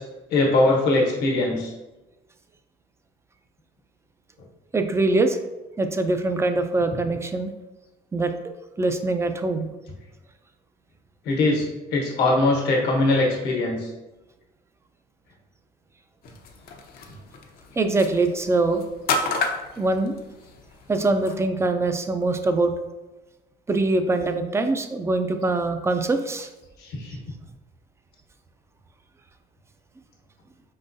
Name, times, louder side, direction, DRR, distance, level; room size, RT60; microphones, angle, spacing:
voice 1, 0.3-1.7 11.2-11.7 11.9-13.9 26.8-27.2, left 2 dB, 80° left, -1 dB, 1.2 m, -21 dB
voice 2, 4.7-5.4 5.8-7.5 8.1-8.3 8.8-9.7 17.8-18.8 19.8-20.2 20.9-22.7 23.7-26.5, right 2 dB, 15° right, 7 dB, 0.4 m, -23 dB
sound 1, 16.2-21.3, left 3 dB, 65° left, 0.6 m, -32 dB
4.8 x 3.8 x 2.6 m, 1.1 s
cardioid pair, 110°, 17 cm